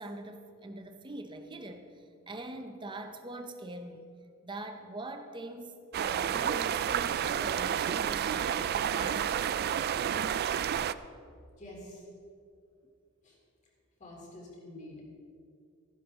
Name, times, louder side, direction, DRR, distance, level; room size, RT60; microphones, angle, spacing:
voice 1, 0.0-4.1 4.4-5.7 6.0-9.5, right 2 dB, 20° right, 6 dB, 0.7 m, -43 dB
sound 1, 5.9-10.9, right 9 dB, 50° right, 0.3 m, -30 dB
voice 2, 11.6-12.1 13.2-13.4 14.0-15.0, left 1 dB, 35° left, -3 dB, 3.2 m, -47 dB
15.0 x 11.5 x 3.7 m, 2.3 s
head